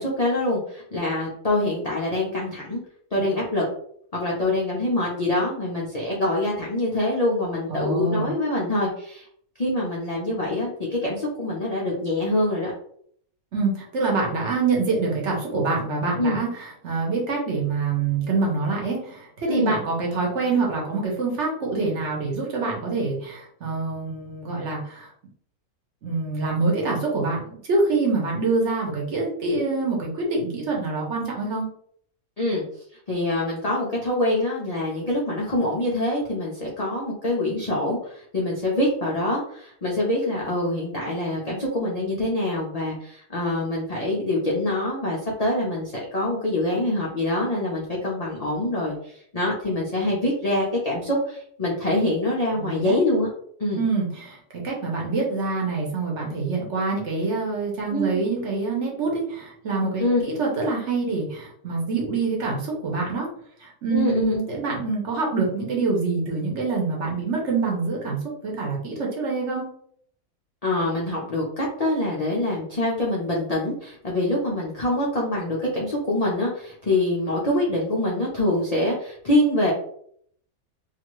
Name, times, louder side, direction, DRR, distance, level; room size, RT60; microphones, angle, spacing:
voice 1, 0.0-2.8 3.1-3.7 4.1-9.3 9.6-12.7 16.2-16.4 19.5-19.8 32.4-32.6 33.1-53.3 53.6-53.8 57.9-58.2 60.0-60.2 63.9-64.4 70.6-79.7, left 1 dB, 60° left, -4 dB, 0.4 m, -25 dB
voice 2, 7.7-8.3 13.5-25.1 26.0-31.7 52.5-53.0 53.8-54.4 54.6-63.3 63.6-69.7, right 3 dB, 55° right, -1 dB, 1.0 m, -25 dB
2.8 x 2.4 x 3.0 m, 0.65 s
omnidirectional pair, 1.6 m